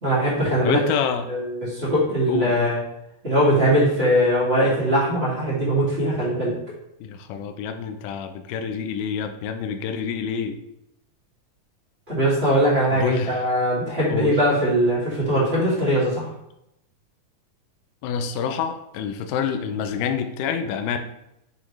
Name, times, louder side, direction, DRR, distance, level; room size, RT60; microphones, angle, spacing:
voice 1, 0.0-0.8 1.3-2.8 3.2-6.5 12.1-16.3, equal, 20° right, -9 dB, 2.2 m, -21 dB
voice 2, 0.6-1.3 2.3-2.7 7.0-10.6 12.9-13.5 14.1-14.3 18.0-21.0, left 7 dB, 85° left, 7 dB, 2.1 m, -27 dB
8.3 x 3.6 x 3.2 m, 0.83 s
omnidirectional pair, 3.7 m